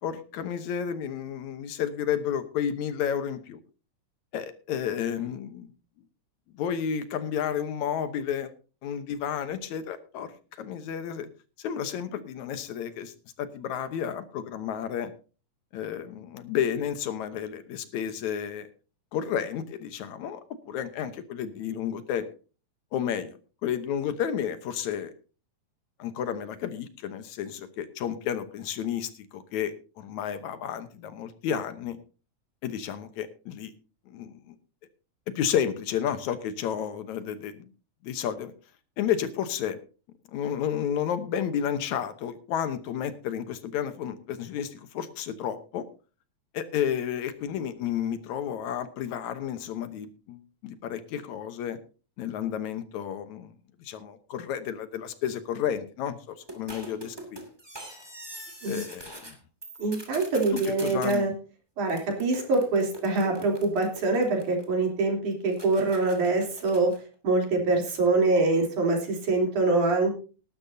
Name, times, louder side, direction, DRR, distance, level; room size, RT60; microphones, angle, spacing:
voice 1, 0.0-3.6 4.3-5.7 6.5-8.5 8.8-11.3 11.6-15.1 15.7-18.7 19.1-20.4 20.7-22.3 22.9-25.1 26.0-32.0 32.6-33.7 34.1-34.6 35.4-37.7 38.0-38.5 39.0-39.8 40.3-45.9 46.5-51.8 52.2-53.5 53.8-57.4 58.6-59.4 60.5-61.3, left 9 dB, 75° left, 11 dB, 2.3 m, -31 dB
sound 1, 56.5-59.3 59.6-61.2 61.9-64.9 65.5-67.0, right 1 dB, 10° right, 2.3 m, -43 dB
voice 2, 59.8-61.3 61.8-66.9 67.2-70.1, right 3 dB, 90° right, 1 dB, 4.8 m, -24 dB
18.5 x 12.0 x 2.7 m, 0.36 s
omnidirectional pair, 3.4 m